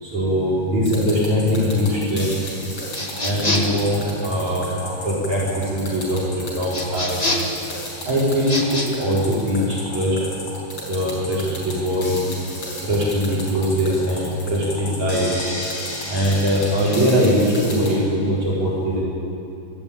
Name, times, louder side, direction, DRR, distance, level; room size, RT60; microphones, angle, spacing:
voice 1, 0.0-2.4 3.2-4.7 5.0-7.2 8.0-10.2 10.9-12.3 12.8-15.3 16.1-19.0, equal, 55° right, -6 dB, 6.1 m, -21 dB
sound 1, 0.9-17.9, left 1 dB, 45° left, 6.0 m, -33 dB
sound 2, 2.9-3.8 6.7-7.6 8.4-8.9, left 1 dB, 25° left, 0.8 m, -25 dB
26.5 x 12.5 x 9.0 m, 2.7 s
omnidirectional pair, 3.9 m